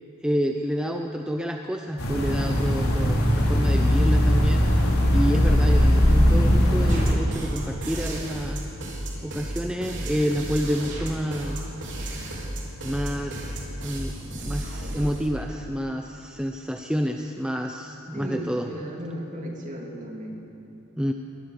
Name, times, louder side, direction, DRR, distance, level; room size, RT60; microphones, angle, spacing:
voice 1, 0.2-4.6 5.1-8.6 9.2-11.6 12.8-18.7 21.0-21.1, equal, 5° right, 3 dB, 0.7 m, -29 dB
sound 1, 2.0-7.1, equal, 80° left, 3.7 m, -20 dB
sound 2, 6.9-15.3, right 1 dB, 55° right, 3.8 m, -33 dB
voice 2, 18.1-20.4, equal, 35° right, 0 dB, 3.1 m, -35 dB
22.5 x 19.0 x 6.7 m, 2.8 s
head